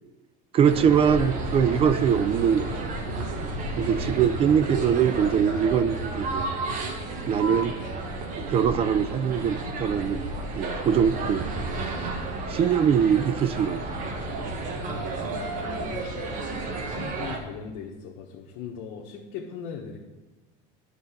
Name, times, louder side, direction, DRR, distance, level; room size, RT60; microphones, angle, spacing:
voice 1, 0.5-2.9 3.8-6.6 7.3-7.7 8.4-11.5 12.5-14.1, right 8 dB, 35° right, 14 dB, 0.4 m, -23 dB
sound 1, 0.6-17.4, right 2 dB, 50° right, 1.4 m, -32 dB
voice 2, 4.0-4.6 15.1-16.4 16.7-20.0, left 7 dB, 75° left, -2 dB, 1.2 m, -40 dB
sound 2, 7.4-14.4, right 1 dB, 65° right, 0.9 m, -45 dB
10.5 x 3.9 x 7.3 m, 1.1 s
cardioid pair, 145°, 18 cm